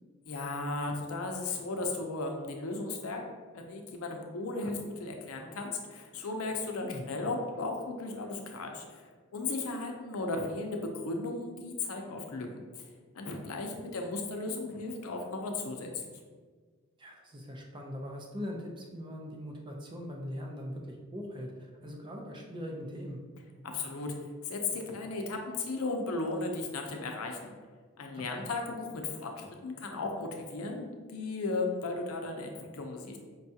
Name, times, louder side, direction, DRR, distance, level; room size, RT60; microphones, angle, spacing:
voice 1, 0.3-3.2 3.5-9.0 9.3-12.5 12.7-12.8 13.1-16.2 23.7-24.1 24.4-27.5 28.0-33.2, left 3 dB, 85° left, 3 dB, 0.6 m, -35 dB
voice 2, 17.0-21.5 21.8-23.2 28.2-28.5, equal, 20° right, 0 dB, 0.5 m, -41 dB
5.2 x 2.3 x 2.7 m, 1.5 s
head